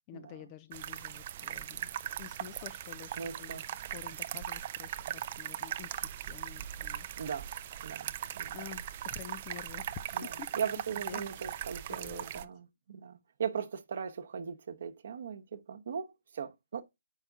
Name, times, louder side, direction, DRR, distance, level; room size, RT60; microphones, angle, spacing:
voice 1, 0.1-1.9 2.2-7.1 8.5-10.6 10.9-11.3 11.9-12.5, left 11 dB, 25° left, 0.4 m, -49 dB
sound 1, 0.7-12.4, right 11 dB, 35° right, 0.5 m, -39 dB
voice 2, 3.2-3.6 7.2-7.5 7.8-8.6 10.1-16.8, right 7 dB, 55° right, 1.0 m, -39 dB
7.8 x 5.6 x 3.5 m
figure-of-eight pair, 145°, 0 cm